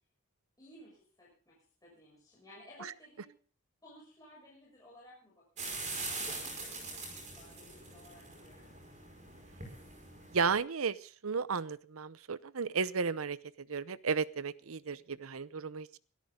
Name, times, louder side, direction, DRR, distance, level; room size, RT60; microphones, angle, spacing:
voice 1, 0.6-3.3 3.8-8.7, left 1 dB, 15° left, -6 dB, 6.5 m, -57 dB
sound 1, 5.6-10.5, right 3 dB, 35° right, 5.2 m, -43 dB
voice 2, 10.3-16.0, right 5 dB, 80° right, 18 dB, 0.8 m, -34 dB
22.5 x 13.0 x 3.7 m, 0.41 s
head